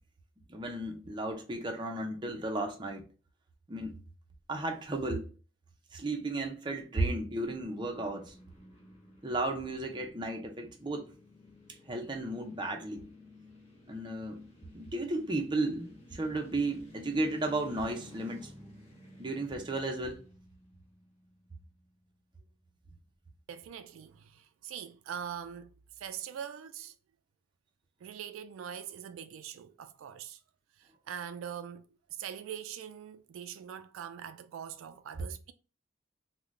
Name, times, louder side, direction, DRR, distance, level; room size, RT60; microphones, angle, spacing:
voice 1, 0.5-3.0 3.7-4.0 4.5-5.3 5.9-8.3 9.2-11.1 11.9-13.1 13.9-14.4 14.7-18.5 19.2-20.2, right 2 dB, 25° right, 0.5 m, -34 dB
sound 1, 7.5-21.6, left 2 dB, 30° left, 0.9 m, -54 dB
voice 2, 23.5-25.7 26.0-26.9 28.0-30.4 30.8-31.9 32.2-35.5, right 8 dB, 85° right, 0.3 m, -42 dB
3.7 x 2.1 x 3.1 m
head